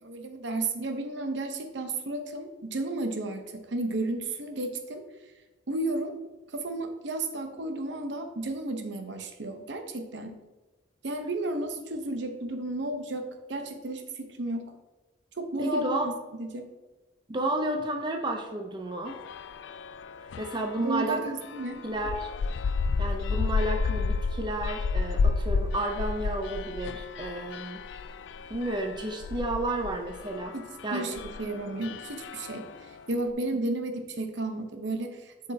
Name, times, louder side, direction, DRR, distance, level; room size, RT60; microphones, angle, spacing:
voice 1, 0.0-5.0 5.7-6.1 6.5-10.4 11.0-14.7 15.4-15.9 16.3-16.7 20.8-21.8 30.5-30.6 30.9-35.5, right 2 dB, 70° right, 5 dB, 0.8 m, -33 dB
voice 2, 15.6-16.1 17.3-19.2 20.4-21.2 21.8-22.3 23.0-27.8 28.5-30.5 30.8-31.0, right 1 dB, 25° right, 3 dB, 0.5 m, -31 dB
sound 1, 19.1-20.9 21.4-32.9, left 4 dB, 75° left, 0.3 m, -32 dB
7.9 x 5.3 x 2.7 m, 1.2 s
head